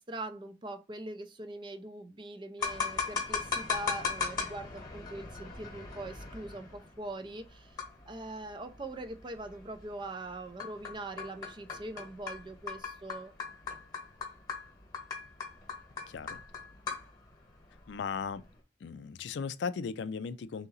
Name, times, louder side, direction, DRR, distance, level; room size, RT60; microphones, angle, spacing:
voice 1, 0.0-7.8 8.1-13.3, right 2 dB, 25° right, 0.4 m, -42 dB
sound 1, 2.6-18.6, left 5 dB, 20° left, 1.1 m, -38 dB
voice 2, 16.1-16.4 17.9-18.5 18.8-20.7, left 5 dB, 70° left, 0.4 m, -37 dB
3.9 x 2.8 x 3.9 m
head